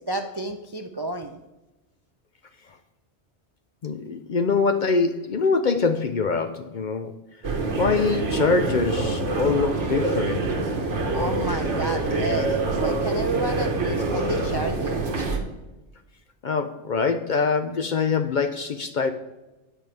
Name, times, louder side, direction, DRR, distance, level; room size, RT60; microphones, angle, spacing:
voice 1, 0.1-1.4 11.1-15.0, right 2 dB, 35° right, 5 dB, 0.4 m, -30 dB
voice 2, 3.8-7.1 7.8-10.6 16.4-19.1, left 5 dB, 55° left, 8 dB, 0.6 m, -24 dB
sound 1, 7.4-15.4, right 2 dB, 85° right, 1.6 m, -25 dB
10.0 x 8.4 x 3.4 m, 1.0 s
omnidirectional pair, 1.2 m